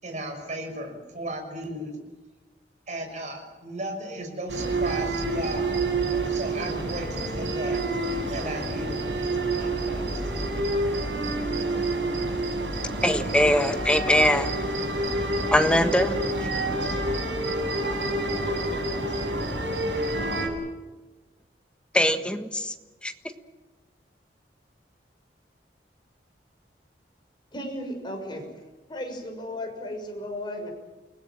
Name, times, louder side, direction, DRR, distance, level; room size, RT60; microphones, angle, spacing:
voice 1, 0.0-2.0 2.9-5.8 6.3-7.8 8.3-9.1 9.5-10.0, right 1 dB, 45° right, 4 dB, 6.0 m, -35 dB
sound 1, 4.5-20.5, right 2 dB, 90° right, 7.9 m, -28 dB
voice 2, 13.0-14.5 15.5-16.2 21.9-22.7 23.0-23.1, left 1 dB, 5° left, 7 dB, 1.4 m, -22 dB
voice 3, 27.5-28.5 28.9-30.7, left 1 dB, 25° left, 1 dB, 6.4 m, -35 dB
29.5 x 19.5 x 7.5 m, 1.2 s
head